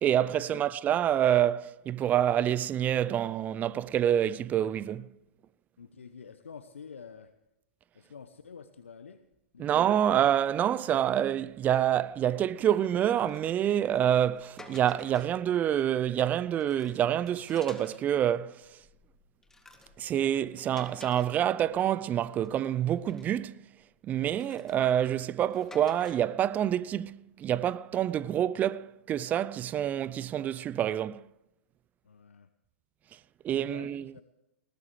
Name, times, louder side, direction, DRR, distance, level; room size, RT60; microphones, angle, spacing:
voice 1, 0.0-5.1 9.6-18.6 20.0-23.6 24.0-31.2 33.4-34.1, right 10 dB, 25° right, 0.6 m, -27 dB
voice 2, 5.8-7.3 7.9-9.2 9.5-9.8 32.0-32.5 33.6-34.2, left 6 dB, 80° left, 1.0 m, -48 dB
sound 1, 11.4-11.6 12.0-12.3 12.8-15.5 16.0-18.1 18.6-21.9 22.3-23.4 24.1-26.4, left 2 dB, 5° left, 2.1 m, -54 dB
20.5 x 18.5 x 3.3 m
hypercardioid pair, 110°, 7 cm